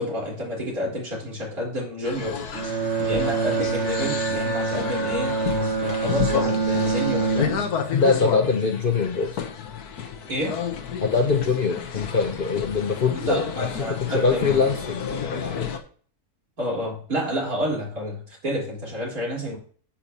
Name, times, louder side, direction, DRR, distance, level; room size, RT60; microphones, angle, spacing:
voice 1, 0.0-7.6 10.3-10.6 13.1-14.6 16.6-19.6, equal, 70° right, -3 dB, 4.6 m, -30 dB
sound 1, 2.0-15.8, left 7 dB, 85° left, 1.6 m, -31 dB
Bowed string instrument, 2.5-8.0, right 4 dB, 50° right, 1.3 m, -26 dB
voice 2, 7.9-9.4 11.0-13.7 14.0-15.7, left 4 dB, 45° left, 4 dB, 0.9 m, -23 dB
10.0 x 8.7 x 2.9 m, 0.44 s
omnidirectional pair, 1.6 m